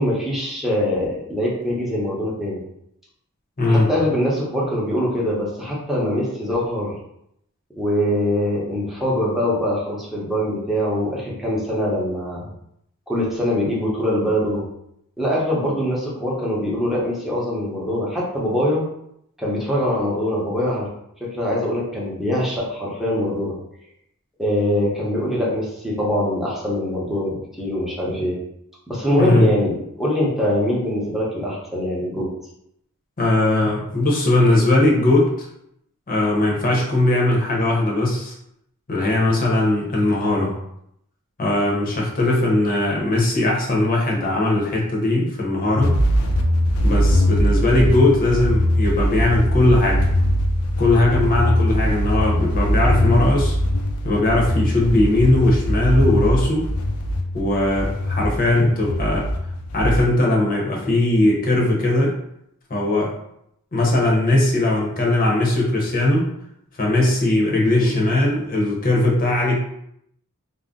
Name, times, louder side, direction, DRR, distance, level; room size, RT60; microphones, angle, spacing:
voice 1, 0.0-2.6 3.7-6.9 7.8-12.5 13.1-14.6 15.2-18.8 19.4-20.9 21.2-23.6 24.4-28.4 28.9-32.3 67.7-67.9, equal, ahead, -6 dB, 0.7 m, -23 dB
voice 2, 3.6-3.9 29.2-29.5 33.2-35.5 36.1-38.3 38.9-40.5 41.4-46.0 46.8-50.1 50.8-53.6 54.0-56.7 57.3-59.3 59.7-62.1 62.7-63.1 63.7-66.3 66.8-69.6, left 2 dB, 40° left, -2 dB, 0.7 m, -19 dB
sound 1, 45.8-60.0, equal, 75° left, 0.4 m, -21 dB
2.5 x 2.0 x 3.6 m, 0.76 s
head